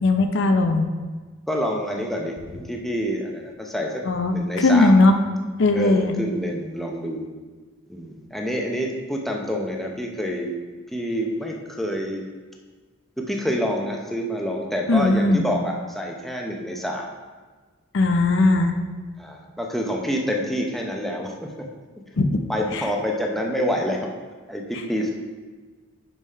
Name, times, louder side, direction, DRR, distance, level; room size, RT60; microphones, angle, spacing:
voice 1, 0.0-0.9 4.1-5.1 5.6-6.2 14.9-15.4 17.9-18.7 22.2-22.3 22.7-22.8, left 2 dB, 60° left, 6 dB, 0.5 m, -18 dB
voice 2, 1.5-4.0 4.3-5.0 5.7-7.3 7.9-10.6 10.9-12.2 13.2-17.1 19.2-21.7 22.5-24.1 24.5-25.1, equal, ahead, 0 dB, 0.6 m, -27 dB
5.5 x 4.9 x 5.4 m, 1.4 s
head